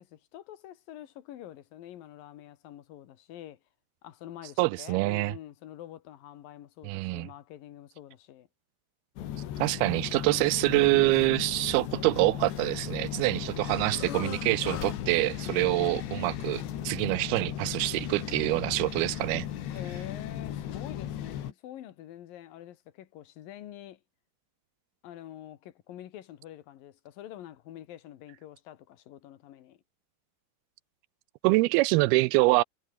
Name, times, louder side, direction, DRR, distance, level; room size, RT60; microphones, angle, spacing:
voice 1, 0.0-3.6 4.0-8.5 15.4-16.2 19.6-24.0 25.0-29.8, left 12 dB, 65° left, 3.0 m, -46 dB
voice 2, 4.6-5.3 6.8-7.3 9.6-19.5 31.4-32.6, right 21 dB, 80° right, 2.3 m, -25 dB
sound 1, 9.2-21.5, left 11 dB, 85° left, 4.3 m, -36 dB
omnidirectional pair, 4.8 m